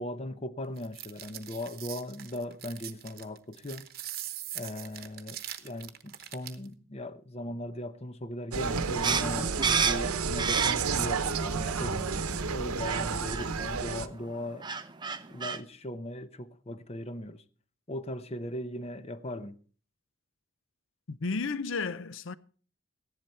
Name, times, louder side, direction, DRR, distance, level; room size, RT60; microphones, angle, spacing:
voice 1, 0.0-3.8 4.5-14.7 15.3-17.4 17.9-19.6, left 1 dB, 30° left, 0.7 m, -38 dB
sound 1, 0.8-6.7, right 12 dB, 45° right, 1.0 m, -42 dB
Insect, 8.5-14.1, right 5 dB, 90° right, 0.9 m, -31 dB
sound 2, 9.0-11.1 11.5-12.2 12.8-13.0 13.3-13.5 14.3-14.4 14.6-15.6, right 6 dB, 20° right, 0.6 m, -29 dB
voice 2, 21.1-22.3, left 4 dB, 60° left, 0.6 m, -33 dB
15.0 x 11.0 x 4.4 m
head